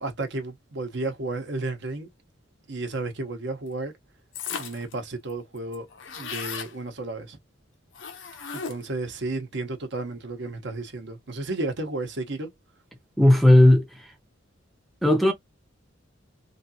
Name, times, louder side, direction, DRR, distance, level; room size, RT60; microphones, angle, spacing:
voice 1, 0.0-2.1 2.7-3.9 4.6-5.9 6.2-7.4 8.5-12.5, right 2 dB, 65° right, 0.9 m, -32 dB
sound 1, 4.3-4.9 5.3-5.4 5.6-6.7 7.9-9.0, left 6 dB, 80° left, 0.7 m, -36 dB
voice 2, 13.2-14.1 15.0-15.3, left 1 dB, ahead, 0.6 m, -16 dB
3.2 x 2.8 x 2.7 m
head